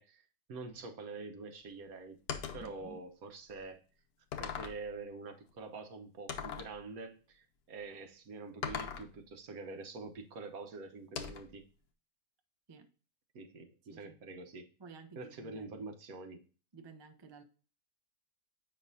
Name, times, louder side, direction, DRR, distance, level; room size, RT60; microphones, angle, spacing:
voice 1, 0.0-2.2 2.5-3.8 4.4-11.6 13.3-14.7 15.1-16.4, right 3 dB, 75° right, 1.4 m, -46 dB
sound 1, 2.3-2.7 3.5-3.6 4.3-4.8 6.3-6.7 8.6-9.1 11.1-11.6, left 7 dB, 85° left, 1.3 m, -40 dB
voice 2, 2.6-3.0 12.7-12.9 13.9-14.4 14.8-15.7 16.7-17.4, right 4 dB, 30° right, 0.5 m, -53 dB
8.1 x 5.4 x 2.7 m
omnidirectional pair, 1.6 m